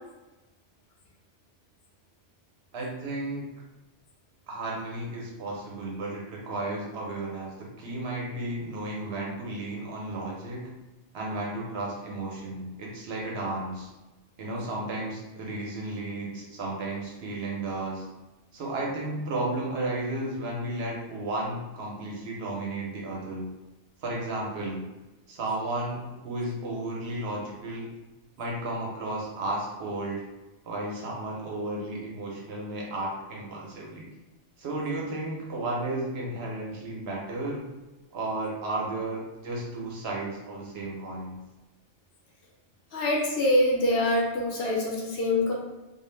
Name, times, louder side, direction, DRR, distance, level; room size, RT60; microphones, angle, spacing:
voice 1, 2.7-3.5 4.5-10.7 11.1-13.9 14.4-18.1 18.5-23.5 24.0-24.8 25.3-27.9 28.4-30.2 30.6-34.1 34.6-37.6 38.1-41.4, right 2 dB, 65° right, -3 dB, 0.9 m, -33 dB
voice 2, 42.9-45.5, left 1 dB, 65° left, -2 dB, 0.8 m, -24 dB
2.4 x 2.0 x 3.1 m, 1.1 s
omnidirectional pair, 1.2 m